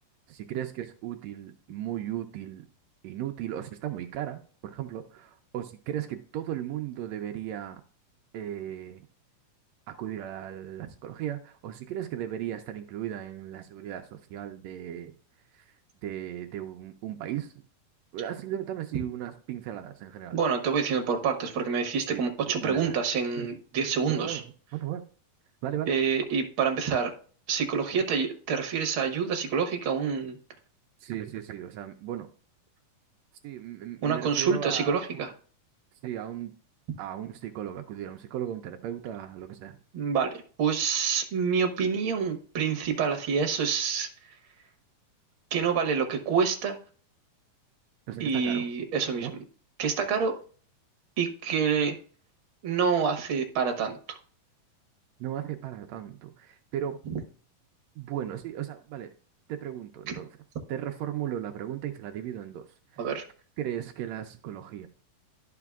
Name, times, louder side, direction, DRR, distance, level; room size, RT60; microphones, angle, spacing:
voice 1, 0.3-2.6 3.0-7.8 8.3-9.1 9.9-15.1 15.5-15.6 16.0-17.5 18.1-20.4 22.1-23.0 23.4-23.5 24.1-24.4 24.7-25.0 25.6-25.9 27.9-28.0 31.0-32.3 33.4-35.2 36.0-36.5 37.0-39.8 48.1-48.7 49.2-49.3 55.2-57.0 58.0-59.1 59.5-60.3 60.7-62.7 62.9-63.0 63.6-64.9, right 11 dB, 90° right, 5 dB, 1.5 m, -36 dB
voice 2, 20.3-24.4 25.9-27.1 27.5-30.4 34.0-35.3 39.9-40.3 40.6-44.1 45.5-46.8 48.2-49.3 49.8-50.3 51.2-51.9 52.6-54.2 63.0-63.2, right 6 dB, 55° right, 5 dB, 1.6 m, -27 dB
12.0 x 5.9 x 2.4 m, 0.42 s
omnidirectional pair, 3.8 m